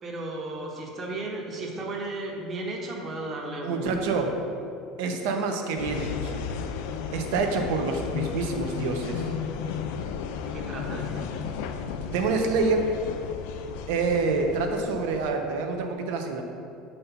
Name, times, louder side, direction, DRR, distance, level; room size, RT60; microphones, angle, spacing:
voice 1, 0.0-4.0 4.6-4.7 10.4-11.3, right 2 dB, 30° right, -1 dB, 1.1 m, -35 dB
voice 2, 3.6-4.4 5.0-6.4 7.1-9.3 12.1-12.9 13.9-16.4, right 4 dB, 80° right, 4 dB, 0.8 m, -27 dB
sound 1, 5.8-15.3, left 6 dB, 80° left, 0.4 m, -34 dB
6.6 x 4.3 x 5.6 m, 2.5 s
supercardioid pair, 135°, 0 cm